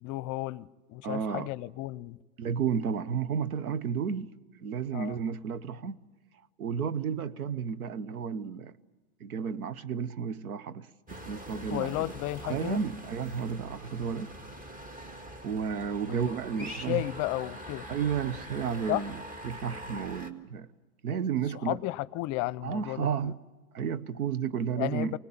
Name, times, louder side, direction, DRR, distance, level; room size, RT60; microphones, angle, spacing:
voice 1, 0.0-2.2 4.9-5.2 11.7-12.8 16.1-17.9 18.9-19.1 21.6-23.3 24.7-25.2, left 18 dB, 40° left, 0.7 m, -33 dB
voice 2, 1.0-1.5 2.4-4.3 4.6-6.0 6.6-8.7 9.2-10.9 11.3-12.1 12.4-14.3 15.4-17.0 17.9-19.2 19.4-20.7 21.0-21.8 22.6-23.4 23.7-25.2, right 7 dB, 85° right, 1.1 m, -32 dB
sound 1, 11.1-20.3, right 1 dB, 20° right, 1.9 m, -44 dB
25.0 x 19.5 x 8.8 m
hypercardioid pair, 100°, 43 cm